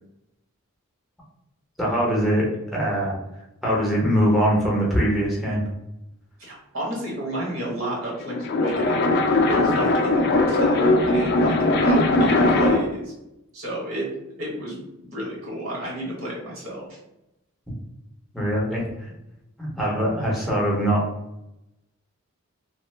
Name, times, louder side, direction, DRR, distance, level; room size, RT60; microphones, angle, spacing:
voice 1, 1.8-3.2 3.6-5.7 18.3-19.1 19.6-21.1, equal, ahead, -5 dB, 0.8 m, -22 dB
voice 2, 6.4-9.1 9.5-13.1 13.5-14.1 14.4-17.0, right 1 dB, 65° right, -3 dB, 1.1 m, -31 dB
sound 1, 8.1-13.0, left 2 dB, 45° left, 0.4 m, -20 dB
2.9 x 2.1 x 3.2 m, 0.88 s
head